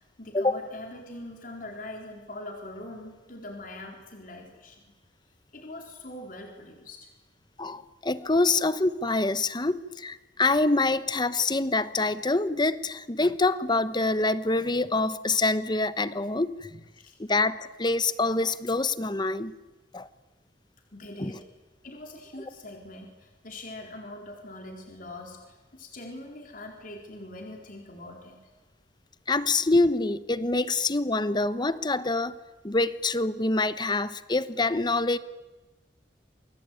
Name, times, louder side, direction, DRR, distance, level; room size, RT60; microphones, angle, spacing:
voice 1, 0.2-4.8 5.5-7.1 17.0-17.1 20.9-21.4 21.8-28.4, left 1 dB, 50° left, 2 dB, 4.2 m, -42 dB
voice 2, 7.6-16.5 17.2-19.5 19.9-20.1 21.2-21.3 29.3-32.3 32.6-35.2, left 2 dB, 25° left, 14 dB, 1.0 m, -25 dB
28.5 x 21.5 x 9.2 m, 1.1 s
head